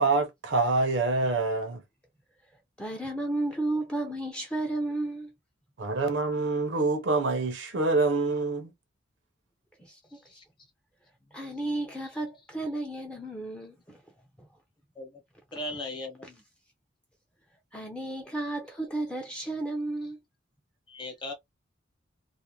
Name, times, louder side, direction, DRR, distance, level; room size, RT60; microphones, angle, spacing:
voice 1, 0.0-1.8 5.8-8.7, right 3 dB, 70° right, 0.6 m, -26 dB
voice 2, 2.8-5.3 9.8-10.0 10.3-10.4 11.3-14.0 14.4-14.5 17.7-20.2, right 2 dB, 5° left, 0.5 m, -33 dB
voice 3, 11.3-11.6 15.0-15.2 15.5-16.4 20.9-21.3, left 2 dB, 25° left, 0.8 m, -39 dB
2.4 x 2.0 x 2.8 m
head